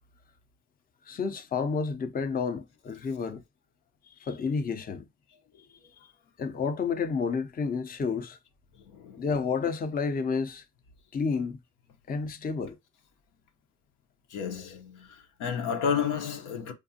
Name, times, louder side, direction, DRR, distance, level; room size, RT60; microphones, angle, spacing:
voice 1, 1.1-3.4 4.1-5.1 6.4-8.4 9.2-10.6 11.1-11.6 12.1-12.8, left 5 dB, 30° left, 0.5 m, -30 dB
voice 2, 8.9-9.2 14.3-16.7, left 7 dB, 85° left, 0.8 m, -31 dB
4.6 x 2.5 x 2.7 m
cardioid pair, 90°, 30 cm